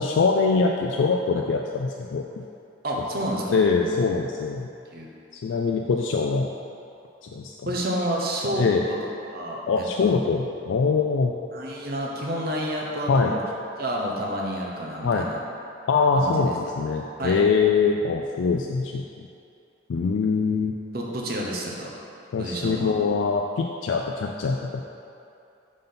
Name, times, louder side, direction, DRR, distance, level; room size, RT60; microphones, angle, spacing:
voice 1, 0.0-2.4 3.5-4.7 5.4-6.5 7.2-7.5 8.5-8.8 9.7-11.3 13.1-13.3 15.0-15.3 15.9-19.3 19.9-20.8 22.3-24.8, left 4 dB, 90° left, 1 dB, 0.3 m, -23 dB
voice 2, 2.8-3.9 4.9-5.1 7.7-8.6 8.9-9.0 9.3-10.3 11.5-13.4 13.8-15.4 16.1-16.5 17.2-17.4 20.9-22.0 22.4-22.9, equal, 55° right, -2 dB, 0.8 m, -29 dB
5.2 x 3.9 x 5.6 m, 2.6 s
head